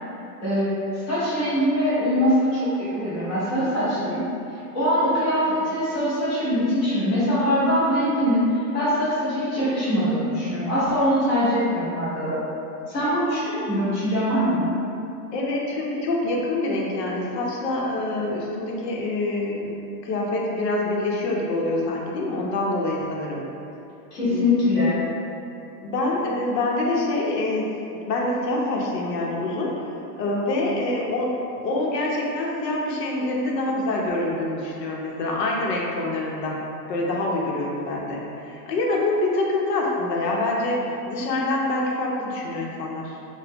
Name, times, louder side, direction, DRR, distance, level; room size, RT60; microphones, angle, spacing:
voice 1, 1.1-4.2 4.7-12.4 12.9-14.7 24.1-25.0, equal, 20° left, -12 dB, 0.5 m, -22 dB
voice 2, 15.3-19.7 20.0-23.4 24.2-24.5 25.8-27.7 28.0-31.3 31.6-36.6 36.9-43.2, left 2 dB, 80° left, -2 dB, 0.8 m, -26 dB
2.9 x 2.2 x 3.3 m, 2.8 s
supercardioid pair, 175°, 48 cm